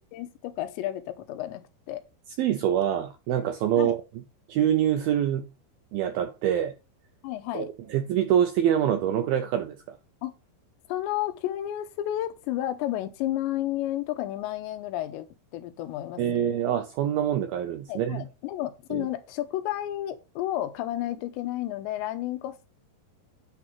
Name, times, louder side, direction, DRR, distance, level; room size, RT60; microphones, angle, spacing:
voice 1, 0.1-2.0 3.8-4.0 7.2-7.7 10.2-10.3 10.9-15.3 15.5-16.2 17.9-22.7, left 13 dB, 85° left, 3.0 m, -31 dB
voice 2, 2.4-4.0 4.5-5.5 5.9-6.7 7.5-10.0 16.2-18.2 18.9-19.1, right 10 dB, 80° right, 2.1 m, -25 dB
10.0 x 3.9 x 5.9 m
omnidirectional pair, 5.2 m